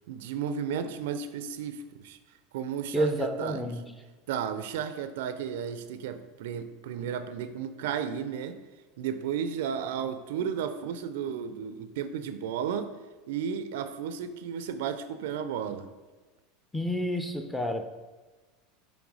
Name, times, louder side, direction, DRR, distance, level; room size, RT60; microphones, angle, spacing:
voice 1, 0.1-2.2 2.5-3.7 4.3-8.6 9.0-12.9 13.3-15.9, right 7 dB, 70° right, 10 dB, 0.4 m, -33 dB
voice 2, 2.9-3.9 16.7-17.9, equal, 5° left, 7 dB, 0.6 m, -29 dB
6.2 x 3.4 x 4.7 m, 1.3 s
hypercardioid pair, 90°, 0 cm